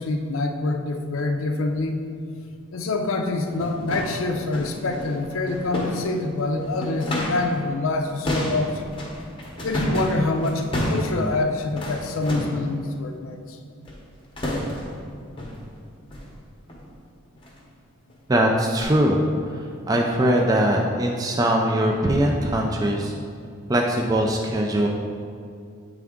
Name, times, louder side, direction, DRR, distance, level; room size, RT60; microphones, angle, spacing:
voice 1, 0.0-2.0 2.7-8.9 9.6-13.6, left 2 dB, 70° left, 5 dB, 0.5 m, -26 dB
sound 1, 2.7-2.8 3.4-7.6 7.8-12.7 13.8-14.1 14.4-15.0 15.4-15.7 16.1-16.3 16.7-16.9 17.4-17.6 18.1-18.2 18.8-18.9, equal, 25° left, 0.8 m, -30 dB
voice 2, 18.3-19.2 19.6-23.1 23.7-24.9, right 1 dB, 15° right, 0 dB, 0.3 m, -21 dB
8.1 x 3.4 x 3.6 m, 2.4 s
head